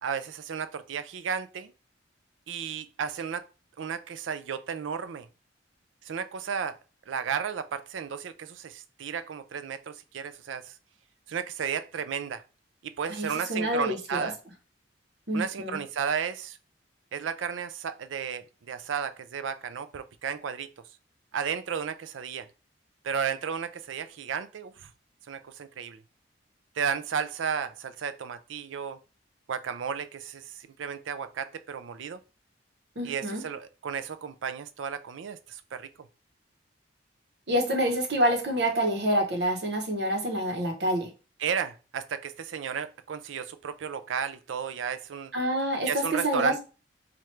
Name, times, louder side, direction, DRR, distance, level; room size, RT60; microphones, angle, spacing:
voice 1, 0.0-1.7 2.5-3.5 3.8-5.3 6.0-6.8 7.1-10.8 11.3-12.4 12.8-14.4 15.3-16.6 17.1-20.7 21.3-22.5 23.0-24.9 25.3-26.0 26.8-29.0 29.5-32.2 33.0-35.9 41.4-45.3 45.9-46.6, right 7 dB, 90° right, 0.4 m, -33 dB
voice 2, 13.2-14.3 15.3-15.8 33.0-33.4 37.5-41.1 45.3-46.6, equal, 60° right, 1.1 m, -27 dB
3.2 x 2.5 x 4.4 m
head